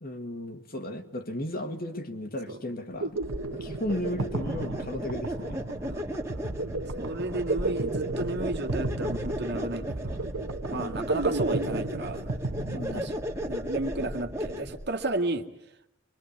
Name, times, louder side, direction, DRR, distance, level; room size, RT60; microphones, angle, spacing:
voice 1, 0.0-3.2 3.6-5.7 10.7-11.2 12.7-13.1, left 1 dB, 45° left, 6 dB, 2.1 m, -35 dB
sound 1, 2.7-13.5, right 2 dB, 90° right, 1.3 m, -33 dB
sound 2, 3.2-14.9, equal, 15° right, 2.0 m, -35 dB
voice 2, 7.0-10.3 10.7-12.3 12.7-15.5, right 2 dB, 55° right, 4 dB, 2.0 m, -33 dB
24.5 x 24.0 x 8.4 m, 0.82 s
head